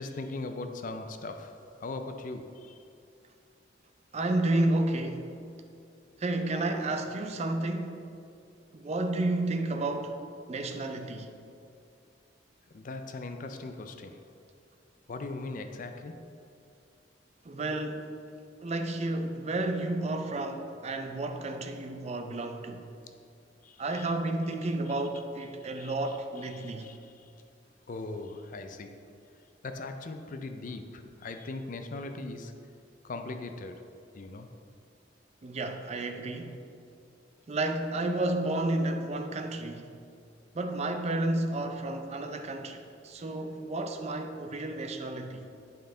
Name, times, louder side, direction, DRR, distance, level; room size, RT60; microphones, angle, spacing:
voice 1, 0.0-2.8 12.7-14.3 15.1-16.4 23.1-23.2 23.6-24.1 25.8-26.2 26.5-27.3 27.9-29.0 29.4-32.7 33.0-34.5, left 3 dB, 45° left, 0.4 m, -40 dB
voice 2, 4.1-5.4 6.2-8.0 8.7-10.2 10.5-11.3 17.4-18.1 18.6-22.8 23.8-26.9 35.4-36.6 37.5-39.9 40.5-45.5, right 2 dB, 35° right, 0.5 m, -31 dB
9.1 x 5.5 x 3.8 m
head